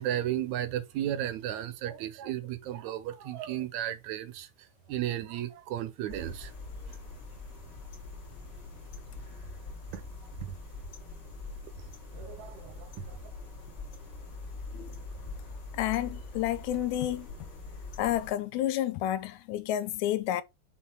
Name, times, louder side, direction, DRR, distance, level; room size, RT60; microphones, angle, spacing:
voice 1, 0.0-4.5 4.9-6.5 6.8-6.9 9.9-10.0 10.4-10.5 12.1-13.2, right 12 dB, 80° right, 2.0 m, -34 dB
sound 1, 6.1-18.3, left 3 dB, 40° left, 2.2 m, -43 dB
voice 2, 15.7-17.3 18.0-20.4, left 12 dB, 80° left, 1.9 m, -30 dB
6.4 x 4.0 x 4.5 m
omnidirectional pair, 3.4 m